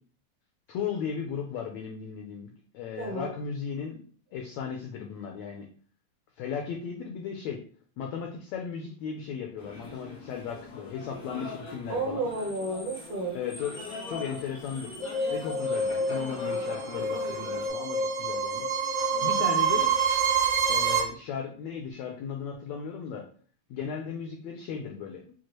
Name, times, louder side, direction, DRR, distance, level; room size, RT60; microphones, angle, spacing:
voice 1, 0.7-4.0 4.3-5.7 6.4-7.6 8.0-12.3 13.3-15.0 15.3-18.6 19.2-19.9 20.6-23.2 23.7-25.2, left 7 dB, 85° left, 2 dB, 1.5 m, -36 dB
voice 2, 3.0-3.3 11.9-13.4 19.1-19.6, right 2 dB, 65° right, -1 dB, 1.8 m, -32 dB
sound 1, 9.6-17.7, left 2 dB, 60° left, 0.9 m, -42 dB
sound 2, 15.0-21.0, right 5 dB, 90° right, 2.6 m, -27 dB
6.2 x 2.4 x 3.0 m, 0.43 s
omnidirectional pair, 3.7 m